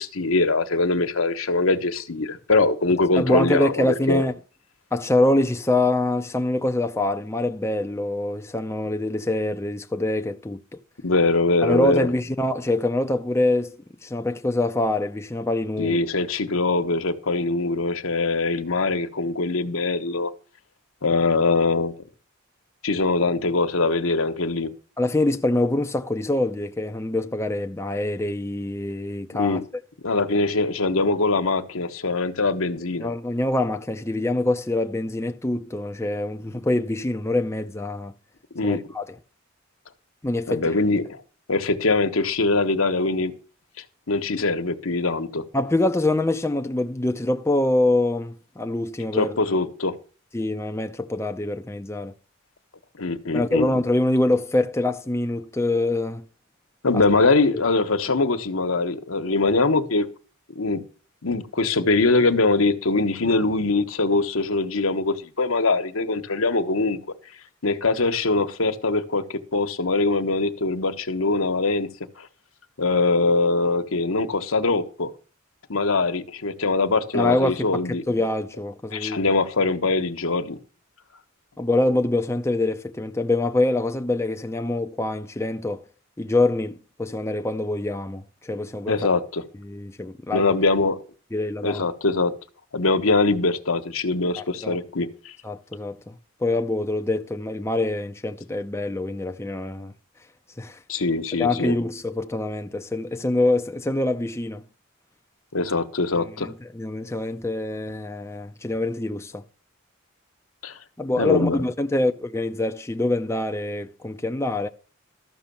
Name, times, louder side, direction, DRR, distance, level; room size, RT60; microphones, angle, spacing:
voice 1, 0.0-4.2 11.0-12.1 15.8-20.3 21.0-21.9 22.8-24.7 29.3-29.6 30.0-33.1 38.5-38.8 40.5-41.2 41.5-43.3 44.1-45.4 49.1-49.9 53.0-53.7 56.8-60.1 60.5-60.8 61.2-67.0 67.6-71.9 72.2-72.3 72.8-75.1 75.7-78.0 78.9-80.6 88.9-89.4 90.3-91.0 91.6-92.3 92.7-95.3 100.9-101.8 105.5-106.5 110.6-110.8 111.2-111.6, left 3 dB, 80° left, 1.2 m, -22 dB
voice 2, 3.2-4.3 4.9-10.6 11.6-13.8 14.0-16.0 25.0-29.6 33.0-38.1 38.6-39.0 40.2-40.7 45.5-49.4 50.3-52.1 53.3-56.2 56.9-57.0 77.1-79.4 81.6-85.8 86.2-89.1 89.6-90.5 91.3-91.8 94.4-94.8 95.4-96.1 96.4-99.9 100.6-100.8 101.4-104.6 106.4-109.4 111.0-114.7, left 2 dB, 15° left, 0.5 m, -25 dB
13.0 x 6.3 x 7.0 m
head